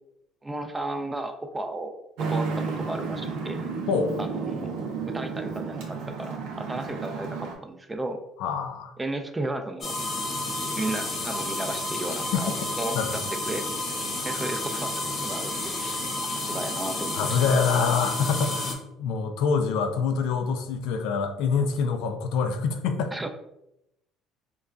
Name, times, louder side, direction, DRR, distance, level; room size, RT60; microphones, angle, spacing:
voice 1, 0.4-3.6 4.2-4.7 5.1-8.2 9.0-10.0 10.8-12.5 12.8-13.2 13.5-13.7 14.2-14.9 15.2-17.4 23.1-23.3, right 2 dB, 15° right, 6 dB, 0.3 m, -34 dB
Traffic noise roadway noise, 2.2-7.5, right 4 dB, 80° right, 0.5 m, -32 dB
voice 2, 8.4-8.9 12.3-12.4 12.9-13.2 17.2-23.1, left 5 dB, 80° left, 7 dB, 0.4 m, -25 dB
sound 1, 9.8-18.7, left 2 dB, 45° left, 0.7 m, -31 dB
3.8 x 2.2 x 2.3 m, 0.83 s
cardioid pair, 125°, 0 cm